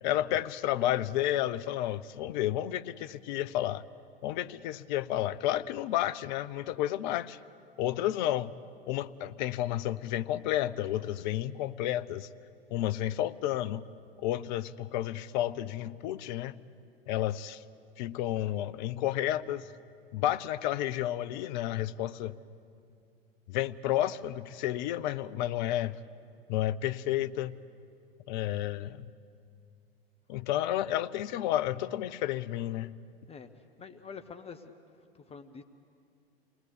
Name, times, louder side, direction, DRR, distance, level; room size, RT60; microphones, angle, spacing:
voice 1, 0.0-3.8 4.2-7.4 7.8-8.5 8.9-12.3 12.7-13.8 14.2-16.5 17.1-17.6 18.0-19.7 20.1-22.4 23.5-26.0 26.5-27.6 28.3-29.1 30.3-32.9, left 13 dB, 50° left, 15 dB, 0.7 m, -31 dB
voice 2, 33.8-34.8 35.1-35.6, left 6 dB, 20° left, 8 dB, 1.0 m, -46 dB
28.0 x 19.0 x 8.2 m, 2.5 s
figure-of-eight pair, 85°, 30 cm